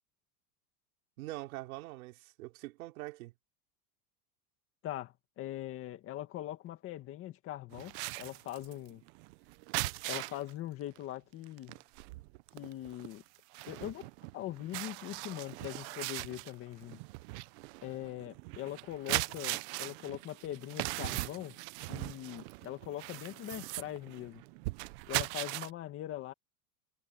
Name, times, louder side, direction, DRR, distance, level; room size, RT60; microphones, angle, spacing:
voice 1, 1.2-3.3, right 19 dB, 80° right, 3.5 m, -43 dB
voice 2, 4.8-9.0 10.0-11.8 12.5-13.2 13.7-14.1 14.3-17.0 17.8-21.6 21.9-24.4 25.1-26.3, left 13 dB, 30° left, 1.9 m, -42 dB
sound 1, 7.7-10.5 11.0-11.1 11.4-25.7, right 22 dB, 50° right, 0.7 m, -39 dB
supercardioid pair, 170°, 42 cm